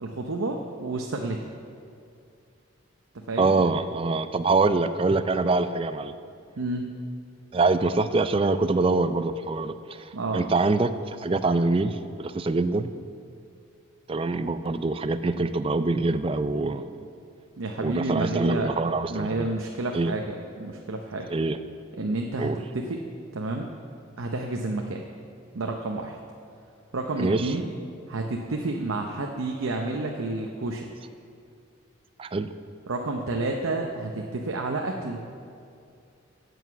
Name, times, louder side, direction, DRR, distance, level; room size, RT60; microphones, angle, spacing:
voice 1, 0.0-1.5 3.1-3.7 6.6-6.9 10.1-10.4 17.6-18.7 19.1-21.3 22.0-23.0 23.3-23.7 24.2-25.0 25.5-26.2 26.9-27.7 28.1-30.9 32.9-35.2, right 2 dB, 80° right, 2 dB, 0.7 m, -30 dB
voice 2, 3.4-6.1 7.5-12.9 14.1-16.9 17.8-19.5 19.9-20.1 21.3-21.6 22.4-22.6 27.2-27.5 32.2-32.5, right 3 dB, 25° right, 11 dB, 0.3 m, -25 dB
9.4 x 8.0 x 6.8 m, 2.4 s
head